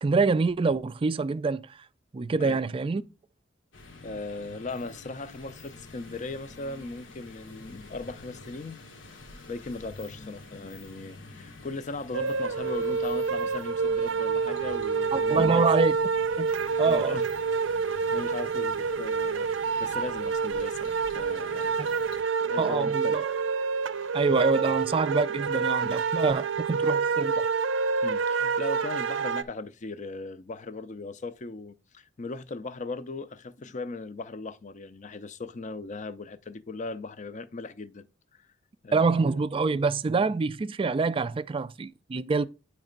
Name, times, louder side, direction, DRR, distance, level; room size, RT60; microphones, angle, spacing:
voice 1, 0.0-1.8 2.1-3.0 15.1-15.9 16.4-16.5 16.8-17.2 21.8-21.9 22.6-23.2 24.1-27.5 38.9-42.5, right 4 dB, 30° right, 0.3 m, -26 dB
sound 1, 3.7-22.2, left 2 dB, 90° left, 1.4 m, -48 dB
voice 2, 4.0-8.8 9.5-15.7 16.5-17.3 18.1-21.8 22.4-23.2 24.6-24.8 25.8-26.0 28.0-38.0 38.4-38.5 38.8-39.4, left 3 dB, 40° left, 0.5 m, -38 dB
sound 2, 12.1-29.4, right 5 dB, 85° right, 0.5 m, -27 dB
9.6 x 3.2 x 5.1 m
head